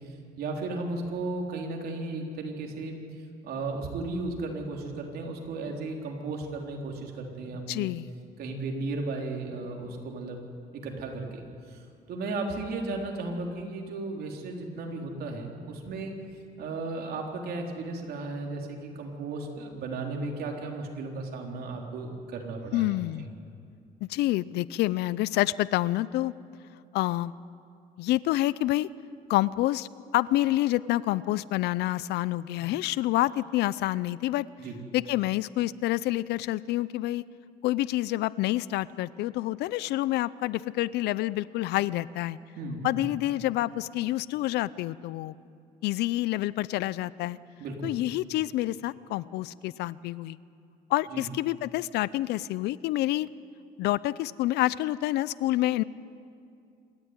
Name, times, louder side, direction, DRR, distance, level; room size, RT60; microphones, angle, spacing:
voice 1, 0.4-3.0 3.4-7.9 8.4-10.4 10.7-11.8 12.1-16.1 16.6-23.3 32.5-32.7 34.6-34.8 42.6-43.0 47.6-48.0 51.1-51.3, right 3 dB, 65° right, 1 dB, 3.9 m, -35 dB
voice 2, 7.7-8.1 12.9-13.0 22.7-23.3 24.0-26.3 26.9-27.3 28.0-28.9 29.3-29.9 30.1-34.5 34.9-37.2 37.6-42.4 42.8-45.3 45.8-47.4 47.8-50.4 50.9-53.3 53.8-55.8, left 16 dB, 80° left, 19 dB, 0.5 m, -28 dB
27.0 x 13.0 x 9.7 m, 2.4 s
cardioid pair, 110°, 17 cm